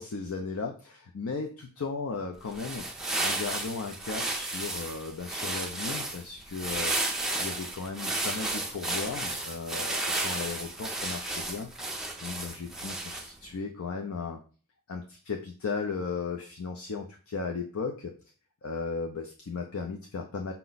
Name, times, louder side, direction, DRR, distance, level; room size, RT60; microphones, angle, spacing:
voice 1, 0.0-7.0 7.4-11.7 12.2-14.4 14.9-18.1 18.6-20.5, left 4 dB, 65° left, 4 dB, 0.5 m, -36 dB
sound 1, 2.4-13.4, right 2 dB, ahead, 0.5 m, -33 dB
5.7 x 2.1 x 3.9 m, 0.38 s
head